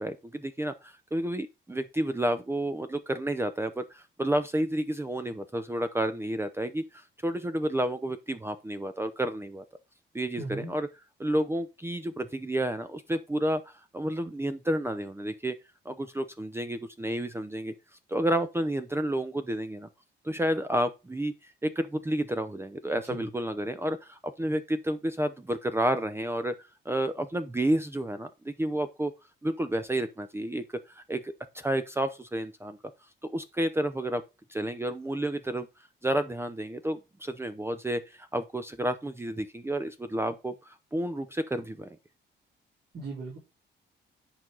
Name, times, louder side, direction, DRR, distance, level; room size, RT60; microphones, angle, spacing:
voice 1, 0.0-9.6 10.1-10.9 11.2-15.6 15.8-17.7 18.1-19.9 20.2-29.1 29.4-32.8 33.2-34.2 34.5-35.7 36.0-41.9, right 1 dB, 10° right, 0.7 m, -30 dB
voice 2, 10.4-10.7 23.0-23.3 42.9-43.4, right 3 dB, 55° right, 4.4 m, -37 dB
10.0 x 4.7 x 3.9 m
cardioid pair, 90°, 20 cm